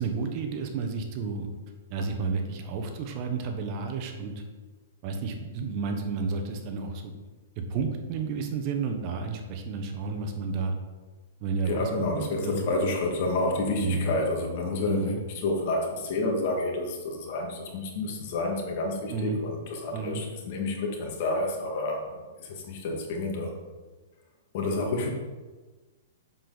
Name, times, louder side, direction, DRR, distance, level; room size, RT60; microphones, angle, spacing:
voice 1, 0.0-1.5 1.9-4.4 5.0-7.1 7.6-10.7 11.4-12.6 13.8-14.1 14.9-15.2 19.1-19.4 19.9-20.2, right 4 dB, 40° right, 4 dB, 1.2 m, -31 dB
voice 2, 11.7-23.5 24.5-25.1, left 2 dB, 50° left, 0 dB, 2.1 m, -29 dB
7.4 x 6.9 x 4.1 m, 1.3 s
hypercardioid pair, 140°, 0 cm